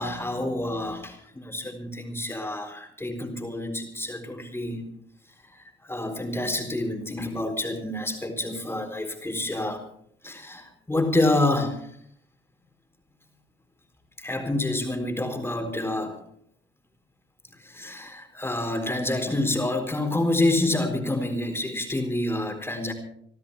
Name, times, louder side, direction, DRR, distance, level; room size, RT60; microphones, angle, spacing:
voice 1, 0.0-4.8 5.6-9.8 10.2-11.9 14.2-16.2 17.6-22.9, left 2 dB, 10° left, 4 dB, 4.1 m, -28 dB
27.0 x 13.0 x 3.4 m, 0.66 s
cardioid pair, 90°, 20 cm